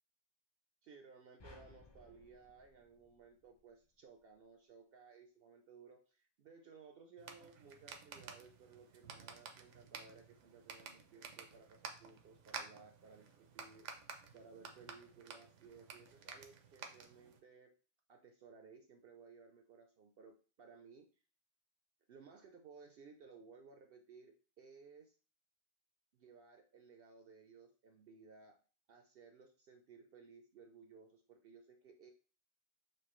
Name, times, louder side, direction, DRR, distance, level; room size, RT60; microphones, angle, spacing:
voice 1, 0.8-17.7 18.1-21.1 22.1-25.2 26.1-28.6 28.9-32.1, right 5 dB, 60° right, 4 dB, 0.7 m, -59 dB
sound 1, 1.4-3.8, left 2 dB, 30° left, 0.5 m, -61 dB
sound 2, 7.2-17.4, right 6 dB, 85° right, 1.0 m, -52 dB
6.0 x 2.6 x 3.0 m, 0.37 s
omnidirectional pair, 1.2 m